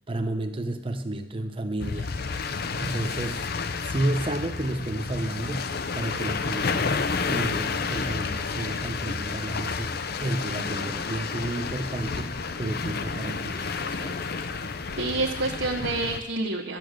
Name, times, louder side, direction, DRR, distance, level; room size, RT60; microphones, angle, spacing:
voice 1, 0.1-3.4 3.8-7.0 7.3-14.2, right 1 dB, 30° right, 6 dB, 0.9 m, -32 dB
sound 1, 1.8-16.2, left 4 dB, 55° left, 0.6 m, -30 dB
voice 2, 13.2-13.6 15.0-16.8, right 2 dB, 85° right, -1 dB, 1.2 m, -28 dB
11.0 x 8.5 x 6.5 m, 0.87 s
head